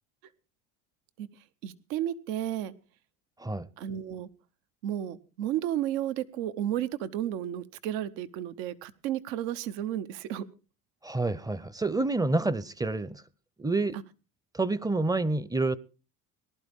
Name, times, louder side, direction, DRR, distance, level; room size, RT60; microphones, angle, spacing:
voice 1, 1.6-2.7 3.8-4.3 4.8-10.5 13.9-14.0, right 11 dB, 80° right, 1.0 m, -32 dB
voice 2, 11.0-13.2 13.6-14.0 14.5-15.8, right 2 dB, 10° right, 0.6 m, -28 dB
19.0 x 12.0 x 3.6 m
supercardioid pair, 95°, 39 cm